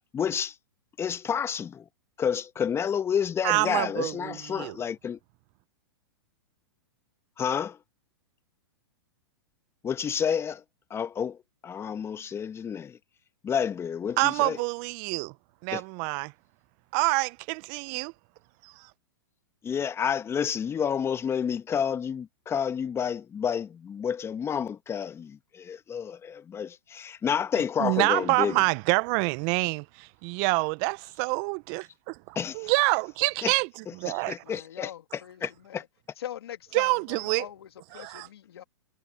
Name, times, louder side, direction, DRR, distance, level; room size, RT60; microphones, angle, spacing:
voice 1, 0.1-0.5 1.0-1.8 2.2-5.2 7.4-7.8 9.8-10.6 10.9-11.4 11.6-13.0 13.4-14.6 15.7-15.8 19.6-28.6 32.3-32.7 33.4-33.5 34.3-35.8, left 7 dB, 20° left, 1.5 m, -30 dB
voice 2, 3.4-4.8 14.2-15.3 15.6-16.3 16.9-18.1 18.6-18.9 27.8-34.5 36.7-37.5 37.9-38.3, right 30 dB, 45° right, 0.9 m, -27 dB
voice 3, 34.4-35.9 36.2-38.6, left 11 dB, 75° left, 2.4 m, -42 dB
hypercardioid pair, 115°, 13 cm